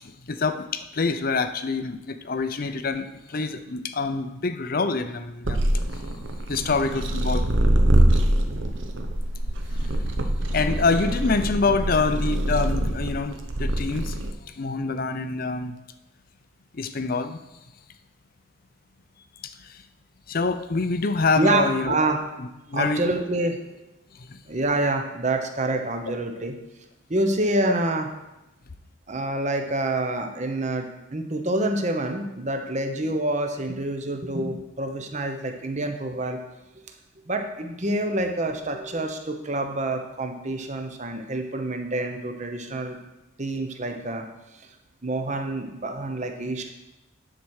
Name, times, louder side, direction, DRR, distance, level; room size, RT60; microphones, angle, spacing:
voice 1, 0.0-5.7 6.5-7.5 9.8-10.0 10.3-14.2 14.5-15.8 16.7-17.4 19.4-19.8 20.3-21.9 22.4-23.1 24.1-24.4, left 4 dB, 45° left, 11 dB, 0.5 m, -26 dB
sound 1, 5.4-14.3, right 1 dB, 60° right, 0.8 m, -24 dB
voice 2, 21.4-22.2 22.7-23.6 24.5-26.5 27.1-28.1 29.1-36.4 37.3-43.0 43.4-44.2 44.5-44.6 45.0-46.7, right 2 dB, 35° right, 4 dB, 0.9 m, -27 dB
10.0 x 4.5 x 6.4 m, 0.97 s
head